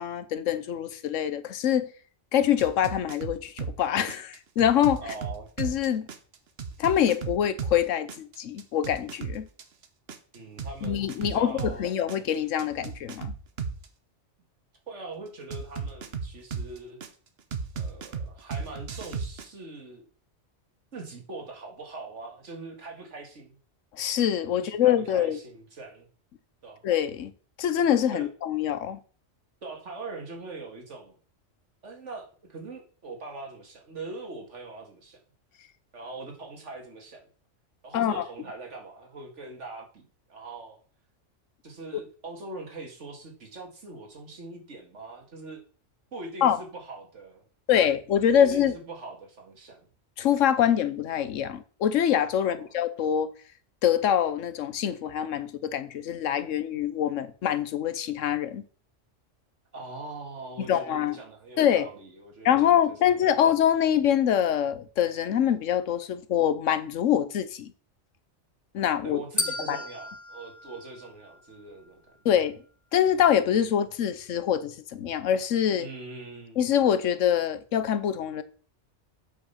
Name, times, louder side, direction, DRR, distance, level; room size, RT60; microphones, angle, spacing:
voice 1, 0.0-1.9 2.3-5.0 5.6-6.1 6.8-9.5 10.8-13.3 23.9-25.4 26.8-27.3 27.6-29.0 37.9-38.2 46.4-46.6 47.7-48.7 50.2-53.3 53.8-58.6 60.7-61.2 61.6-61.9 62.4-67.7 68.7-69.2 69.7-69.8 72.2-72.5 72.9-75.9 76.6-78.4, left 9 dB, 85° left, 1.1 m, -25 dB
sound 1, 2.6-3.8 4.1-7.8 8.1-11.8 12.1-13.9 15.5-17.1 17.5-19.5, right 5 dB, 60° right, 1.1 m, -35 dB
voice 2, 5.0-5.5 10.3-12.0 14.9-17.0 17.7-20.1 20.9-23.6 24.5-26.1 26.6-26.9 28.1-28.3 29.6-31.2 31.8-35.2 35.9-37.3 37.8-40.8 41.6-45.6 46.1-47.4 48.4-49.9 52.4-52.7 59.7-63.4 69.0-72.1 75.8-76.6, right 3 dB, 75° right, 2.2 m, -42 dB
sound 2, 69.4-71.6, left 2 dB, 20° left, 0.6 m, -34 dB
8.2 x 5.2 x 5.6 m
omnidirectional pair, 1.3 m